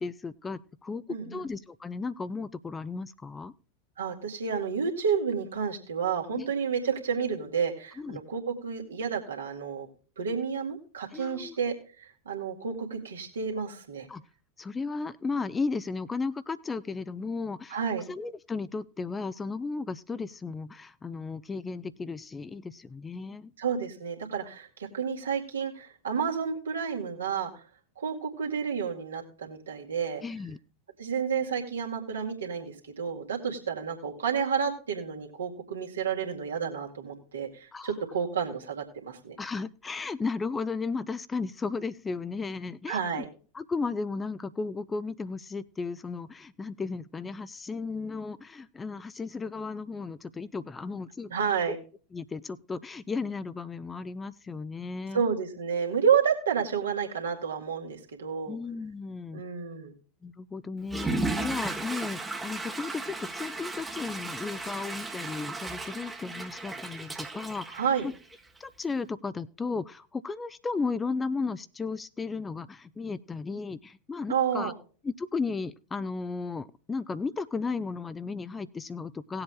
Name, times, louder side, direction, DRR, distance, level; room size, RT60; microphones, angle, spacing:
voice 1, 0.0-3.5 6.3-6.5 8.0-8.2 11.1-11.6 14.1-14.2 14.6-17.8 18.1-23.5 30.2-30.6 37.7-37.9 39.4-43.2 43.5-51.3 52.1-55.2 58.5-59.4 60.2-68.1 68.6-74.7 75.0-79.4, left 4 dB, 15° left, 16 dB, 0.7 m, -35 dB
voice 2, 1.1-1.4 4.0-9.9 10.2-14.1 17.7-18.0 23.6-27.6 28.0-30.2 31.0-39.4 42.9-43.3 51.3-51.8 55.1-58.6 59.3-59.9 67.7-68.1 74.3-74.7, right 6 dB, 70° right, 1 dB, 2.1 m, -30 dB
Water / Toilet flush, 60.8-68.6, right 2 dB, 10° right, 1.2 m, -35 dB
19.0 x 7.9 x 2.3 m, 0.38 s
figure-of-eight pair, 85°, 0 cm